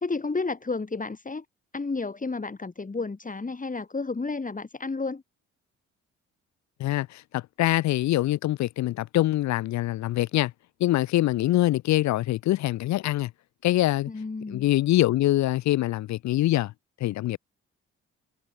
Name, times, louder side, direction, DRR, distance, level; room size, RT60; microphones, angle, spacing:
voice 1, 0.0-1.4 1.7-5.2 14.1-14.6, left 3 dB, 25° left, 4.1 m, -31 dB
voice 2, 6.8-10.5 10.8-13.3 13.6-14.1 14.5-16.7 17.0-17.4, left 15 dB, 65° left, 0.8 m, -24 dB
hypercardioid pair, 50°, 30 cm